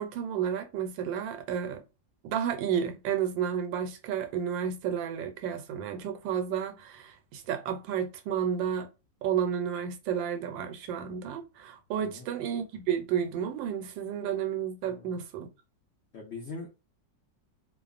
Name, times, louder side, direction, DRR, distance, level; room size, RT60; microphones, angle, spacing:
voice 1, 0.0-1.8 2.2-8.9 9.2-15.5, right 8 dB, 90° right, 1.3 m, -31 dB
voice 2, 14.8-15.2 16.1-16.8, left 3 dB, 75° left, 0.6 m, -42 dB
2.9 x 2.0 x 2.4 m
omnidirectional pair, 2.0 m